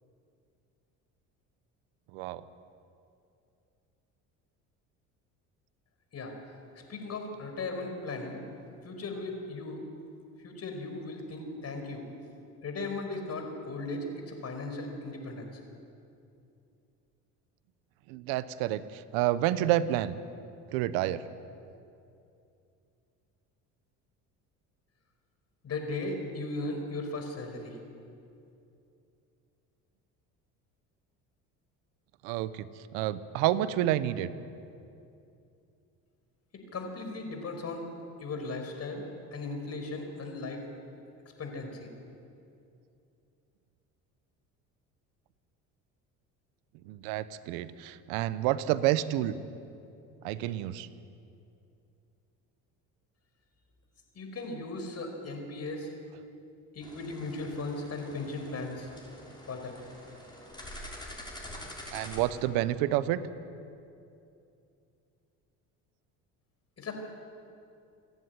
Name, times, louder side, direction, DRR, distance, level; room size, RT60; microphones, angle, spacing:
voice 1, 6.8-8.4 8.8-9.8 10.4-12.0 12.6-15.6 25.6-27.8 36.7-37.8 38.2-39.0 39.3-40.6 41.4-41.9 54.2-55.9 56.7-58.9 59.5-59.8 66.8-66.9, left 2 dB, 45° left, 4 dB, 5.3 m, -37 dB
voice 2, 18.1-20.2 20.7-21.2 32.2-32.7 32.9-34.3 46.9-49.4 50.2-50.9 61.9-63.2, right 13 dB, 80° right, 15 dB, 1.0 m, -29 dB
sound 1, 56.8-62.3, left 1 dB, 10° left, 6.6 m, -46 dB
28.5 x 11.0 x 9.6 m, 2.6 s
supercardioid pair, 80°, 36 cm